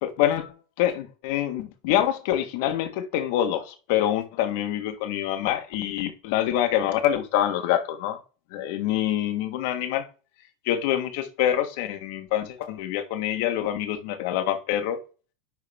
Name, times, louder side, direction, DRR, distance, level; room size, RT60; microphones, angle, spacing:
voice 1, 0.0-8.2 8.5-10.1 10.6-15.0, left 11 dB, 65° left, 1.4 m, -26 dB
10.5 x 3.6 x 3.5 m
supercardioid pair, 145°, 0 cm